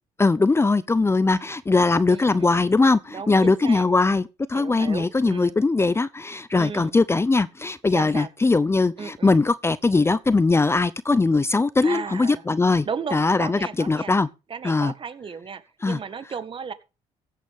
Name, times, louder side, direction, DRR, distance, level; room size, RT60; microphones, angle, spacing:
voice 1, 0.2-12.9 13.1-14.3 14.6-14.9 15.8-16.0, left 3 dB, 20° left, 0.7 m, -20 dB
voice 2, 2.1-2.5 3.1-3.9 4.5-5.5 6.5-7.0 7.9-8.3 9.0-9.4 11.8-12.4 12.8-14.1 14.5-16.7, right 6 dB, 40° right, 1.8 m, -35 dB
15.5 x 8.4 x 3.7 m
supercardioid pair, 80°, 13 cm